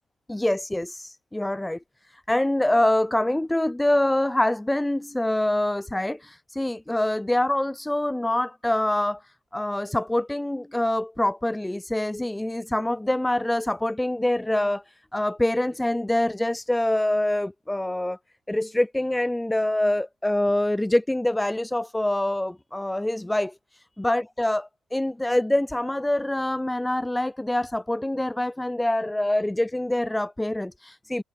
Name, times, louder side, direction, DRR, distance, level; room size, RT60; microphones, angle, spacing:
voice 1, 0.3-1.8 2.3-9.2 9.5-14.8 15.1-18.2 18.5-23.5 24.0-31.2, left 1 dB, 5° left, 6.1 m, -25 dB
cardioid pair, 130°, 0 cm